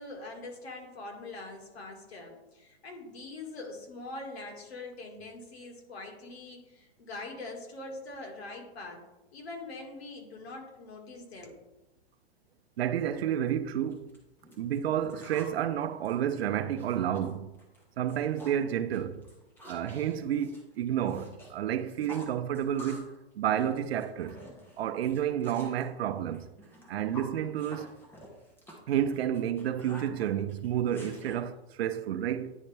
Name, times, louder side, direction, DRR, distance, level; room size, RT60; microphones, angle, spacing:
voice 1, 0.0-9.0 9.3-11.6, left 2 dB, 70° left, 2.1 m, -43 dB
voice 2, 12.8-14.1 14.6-17.5 18.0-19.2 19.7-24.4 24.8-26.4 26.9-27.9 28.9-32.6, right 10 dB, 65° right, 0.6 m, -30 dB
sound 1, 13.5-13.6 13.9-15.6 15.9-17.3 17.6-17.8 18.1-18.6 18.9-21.5 21.8-23.2 23.4-25.8 26.3-31.3, equal, 5° left, 0.9 m, -49 dB
9.6 x 4.0 x 3.4 m
hypercardioid pair, 155°, 33 cm